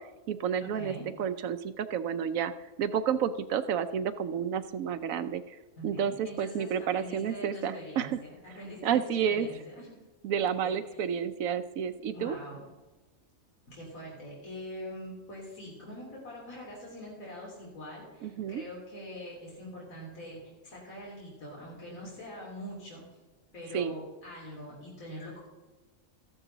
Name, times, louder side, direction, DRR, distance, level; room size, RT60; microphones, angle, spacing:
voice 1, 0.0-2.5 2.8-5.6 5.8-8.2 8.8-9.5 10.2-12.4 18.2-18.6 23.7-23.9, right 8 dB, 75° right, 12 dB, 1.0 m, -30 dB
voice 2, 0.6-1.0 5.8-10.1 10.4-11.0 12.1-12.6 13.7-23.0 23.5-25.4, equal, 70° left, -5 dB, 3.7 m, -43 dB
14.5 x 11.0 x 4.0 m, 1.2 s
omnidirectional pair, 1.4 m